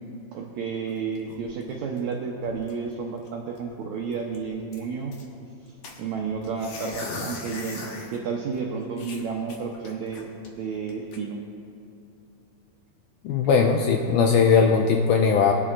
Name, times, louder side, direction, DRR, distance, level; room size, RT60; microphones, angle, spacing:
voice 1, 0.3-5.1 6.0-10.3 10.6-11.4, right 5 dB, 90° right, 0 dB, 1.6 m, -31 dB
sound 1, 0.7-2.1 2.4-2.9 3.3-3.4 3.6-3.7 4.1-5.2 5.8-8.2 8.5-8.6 9.0-10.5 10.9-11.2, left 3 dB, 60° left, 2.0 m, -39 dB
voice 2, 13.2-15.5, left 5 dB, 85° left, 2 dB, 1.8 m, -19 dB
21.0 x 10.0 x 2.4 m, 2.7 s
omnidirectional pair, 4.2 m